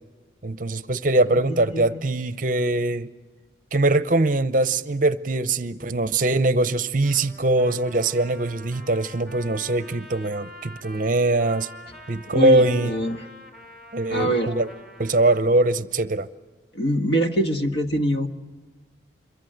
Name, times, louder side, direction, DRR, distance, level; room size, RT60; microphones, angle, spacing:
voice 1, 0.4-3.1 3.7-11.7 12.1-12.9 13.9-14.7 15.0-16.3, right 2 dB, 45° right, 0.7 m, -22 dB
voice 2, 1.3-2.0 12.3-13.2 14.1-14.5 16.7-18.3, equal, 65° left, 1.6 m, -24 dB
Trumpet, 7.0-15.4, equal, ahead, 3.8 m, -45 dB
27.5 x 23.0 x 8.0 m
head